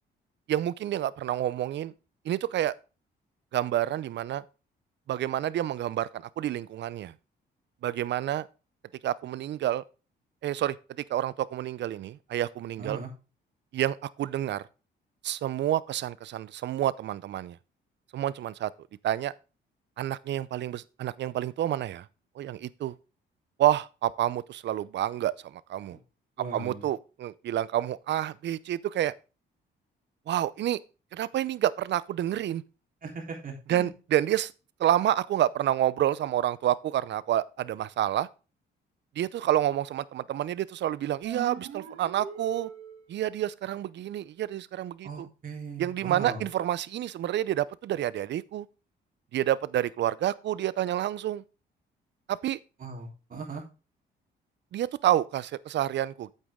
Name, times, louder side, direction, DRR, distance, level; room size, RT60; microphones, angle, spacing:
voice 1, 0.5-1.9 2.2-2.7 3.5-4.4 5.1-7.1 7.8-8.5 9.0-9.8 10.4-10.8 11.1-13.0 13.7-14.6 15.2-17.6 18.1-18.7 19.0-19.3 20.0-22.1 22.4-22.9 23.6-26.0 26.5-29.1 30.3-30.8 31.1-32.6 33.7-34.5 34.8-38.3 39.2-42.7 43.1-45.3 45.8-48.7 49.3-51.4 52.3-52.6 54.7-56.3, right 12 dB, 65° right, 0.6 m, -28 dB
voice 2, 12.8-13.1 25.9-26.0 26.4-26.8 33.0-33.9 45.0-46.4 52.8-53.6, right 4 dB, 45° right, 3.7 m, -38 dB
sound 1, 41.2-43.2, right 9 dB, 85° right, 1.8 m, -40 dB
8.5 x 8.2 x 3.7 m
cardioid pair, 90°, 20 cm